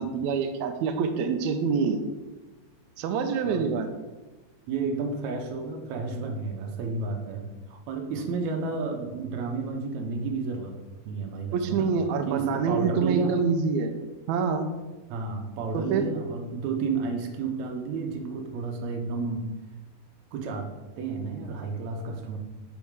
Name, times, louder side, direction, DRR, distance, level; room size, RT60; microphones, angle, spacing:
voice 1, 0.0-2.0 3.0-3.9 11.5-13.9 14.3-14.7 15.7-16.1, right 5 dB, 90° right, 7 dB, 1.6 m, -26 dB
voice 2, 4.7-10.7 11.0-11.9 12.3-13.4 15.1-19.5 20.3-20.7 21.0-22.4, right 4 dB, 70° right, 3 dB, 1.8 m, -31 dB
5.5 x 4.3 x 4.6 m, 1.2 s
omnidirectional pair, 3.9 m